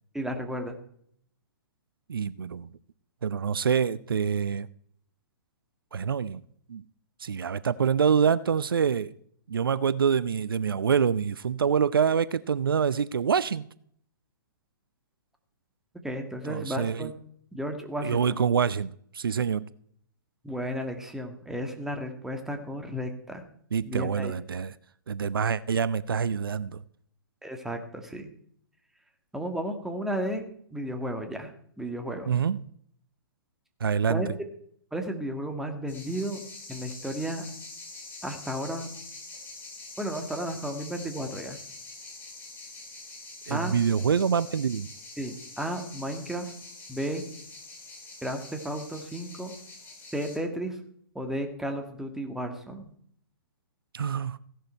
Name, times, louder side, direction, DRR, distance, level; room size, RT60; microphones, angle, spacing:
voice 1, 0.1-0.8 16.0-17.1 17.5-18.4 20.4-23.4 23.9-24.3 27.4-28.3 29.3-30.4 30.7-31.5 31.8-32.3 34.1-34.3 34.9-36.4 36.7-37.5 38.2-38.9 40.0-41.6 43.5-43.7 45.2-46.5 46.9-47.2 48.2-49.6 50.1-50.8 51.2-52.9, right 1 dB, 5° right, 1.8 m, -33 dB
voice 2, 2.1-2.7 3.2-4.7 5.9-6.4 6.7-6.8 7.2-9.1 9.5-13.6 16.4-17.1 18.0-19.7 23.7-24.7 25.1-26.8 32.3-32.6 33.8-34.3 43.5-44.9 53.9-54.4, right 7 dB, 75° right, 0.5 m, -26 dB
sound 1, 35.9-50.4, left 3 dB, 15° left, 5.0 m, -45 dB
16.0 x 11.0 x 4.5 m
figure-of-eight pair, 125°, 12 cm